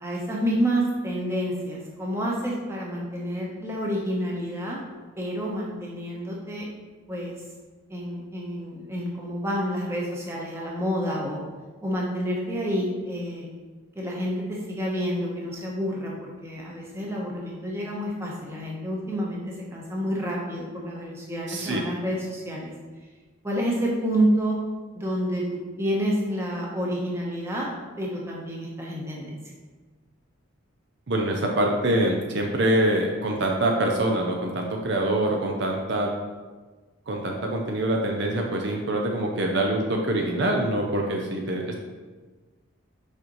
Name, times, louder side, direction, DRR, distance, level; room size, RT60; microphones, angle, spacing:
voice 1, 0.0-4.8 5.2-6.7 7.1-7.3 7.9-11.4 11.8-13.5 13.9-22.7 23.4-24.6 24.9-27.7 28.0-29.4, equal, 10° right, -3 dB, 1.0 m, -29 dB
voice 2, 21.5-21.8 31.1-36.1 37.1-41.8, right 1 dB, 55° right, 1 dB, 0.6 m, -25 dB
6.4 x 5.0 x 3.1 m, 1.3 s
head